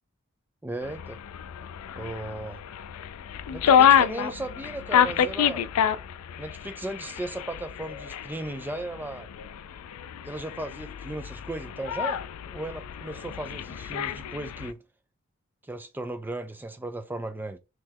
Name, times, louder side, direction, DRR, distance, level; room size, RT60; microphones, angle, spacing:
voice 1, 0.6-1.2 2.0-2.6 3.5-5.7 6.4-9.3 10.2-12.2 12.5-14.8 15.6-17.6, right 2 dB, 10° right, 0.3 m, -36 dB
sound 1, 0.8-14.7, left 9 dB, 85° left, 0.3 m, -27 dB
4.0 x 3.1 x 2.8 m
head